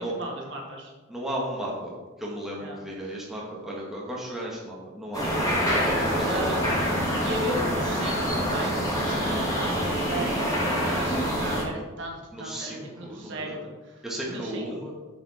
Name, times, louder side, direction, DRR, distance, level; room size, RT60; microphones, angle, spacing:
voice 1, 0.0-0.9 2.6-2.8 6.2-6.6 7.2-13.6 13.9-14.0 14.3-14.6, right 1 dB, 60° right, -1 dB, 1.7 m, -35 dB
voice 2, 1.1-5.4 6.0-6.9 12.3-13.6 14.0-15.0, right 1 dB, ahead, -5 dB, 1.5 m, -35 dB
sound 1, 5.1-11.6, equal, 15° left, 1.9 m, -26 dB
7.2 x 7.0 x 4.2 m, 1.3 s
head